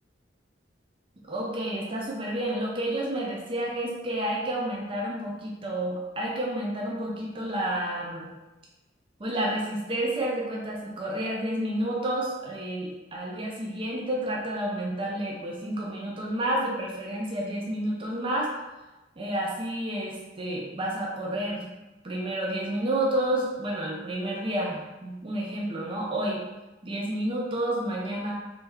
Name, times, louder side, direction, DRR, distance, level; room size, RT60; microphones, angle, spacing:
voice 1, 1.3-8.3 9.2-18.5 19.2-21.7 22.0-26.4 26.8-28.3, right 1 dB, 30° right, -3 dB, 0.5 m, -30 dB
3.1 x 2.3 x 3.4 m, 1.1 s
head